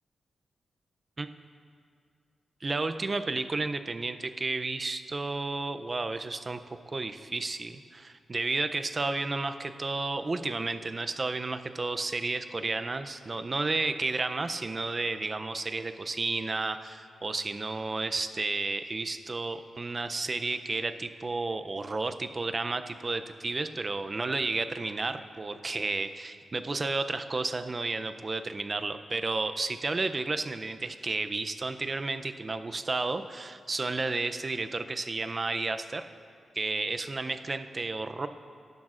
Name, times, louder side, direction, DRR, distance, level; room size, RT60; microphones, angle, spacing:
voice 1, 2.6-6.6 6.9-36.1 36.5-38.3, right 3 dB, 30° right, 9 dB, 0.5 m, -32 dB
18.0 x 10.5 x 2.5 m, 2.2 s
wide cardioid pair, 115°, 0 cm